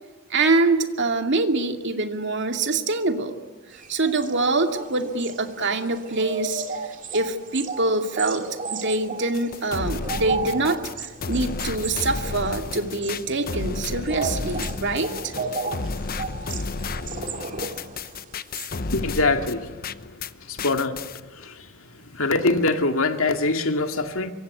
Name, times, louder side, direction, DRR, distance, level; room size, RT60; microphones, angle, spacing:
voice 1, 0.3-3.4 3.7-15.3, right 2 dB, 60° right, 6 dB, 2.4 m, -25 dB
sound 1, 3.7-18.7, right 4 dB, 40° right, 2.5 m, -34 dB
sound 2, 9.3-20.3 20.6-21.2, left 3 dB, 45° left, 0.9 m, -32 dB
voice 2, 18.9-19.7 20.5-21.0 21.3-21.7 22.1-24.3, left 3 dB, 75° left, 6 dB, 2.3 m, -23 dB
25.5 x 24.0 x 9.5 m, 1.2 s
head